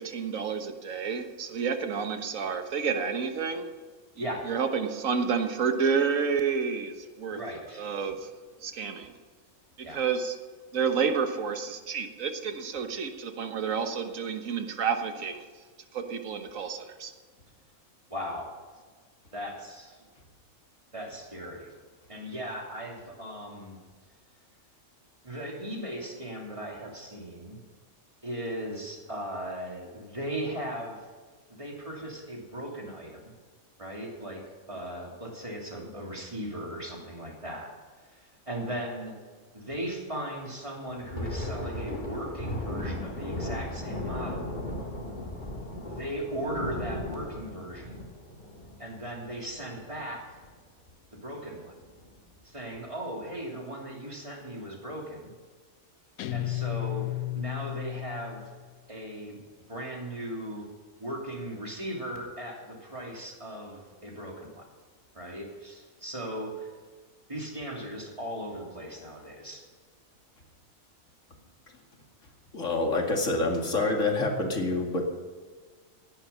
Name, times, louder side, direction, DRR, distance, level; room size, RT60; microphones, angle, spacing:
voice 1, 0.0-3.7 4.5-7.4 7.8-8.3 8.6-9.1 9.8-10.4 10.7-15.5 15.9-17.1, right 6 dB, 70° right, 7 dB, 1.6 m, -30 dB
voice 2, 7.3-7.8 9.8-10.0 18.1-18.5 19.3-20.0 20.9-21.7 22.1-23.8 25.2-27.6 28.2-31.1 31.5-33.3 33.8-37.7 38.0-39.2 39.5-44.5 45.8-48.0 48.8-50.4 51.1-51.8 52.4-55.3 56.3-58.5 58.9-59.4 59.7-60.7 61.0-64.7 65.1-66.7 67.3-69.6, right 1 dB, 20° right, -1 dB, 2.9 m, -38 dB
Thunder, 41.0-50.0 50.3-50.5 50.9-51.2 51.8-52.2, left 1 dB, 35° left, 2.5 m, -36 dB
Guitar, 56.2-58.8, left 16 dB, 85° left, 1.1 m, -33 dB
voice 3, 72.5-75.0, left 2 dB, 60° left, 1 dB, 2.6 m, -27 dB
16.5 x 10.5 x 5.7 m, 1.5 s
omnidirectional pair, 1.5 m